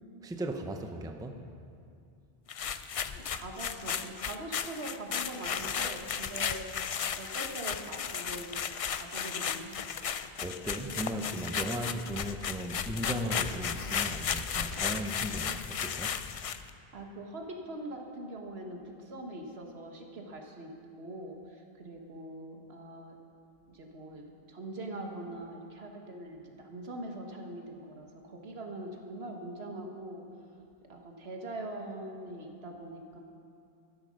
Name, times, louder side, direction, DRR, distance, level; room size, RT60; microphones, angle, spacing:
voice 1, 0.2-1.5 10.4-16.2, right 1 dB, 5° right, 5 dB, 0.6 m, -37 dB
sound 1, 2.5-16.7, left 7 dB, 55° left, 0.4 m, -35 dB
voice 2, 3.1-6.9 7.1-8.5 8.9-9.8 10.8-10.9 16.9-23.2 23.7-30.2 30.9-33.2, right 1 dB, 80° right, 2 dB, 1.7 m, -42 dB
12.5 x 10.5 x 6.4 m, 2.5 s
omnidirectional pair, 1.1 m